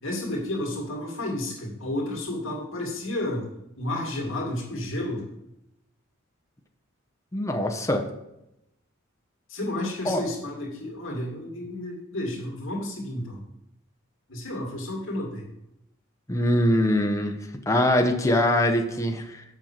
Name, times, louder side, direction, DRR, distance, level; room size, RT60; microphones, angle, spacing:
voice 1, 0.0-3.5 3.8-5.3 9.5-13.4 14.3-15.5, left 1 dB, 65° left, 0 dB, 2.4 m, -31 dB
voice 2, 7.3-8.0 10.0-10.2 16.3-17.4 17.7-19.4, left 1 dB, 15° left, 4 dB, 0.9 m, -23 dB
7.5 x 5.7 x 7.5 m, 0.85 s
head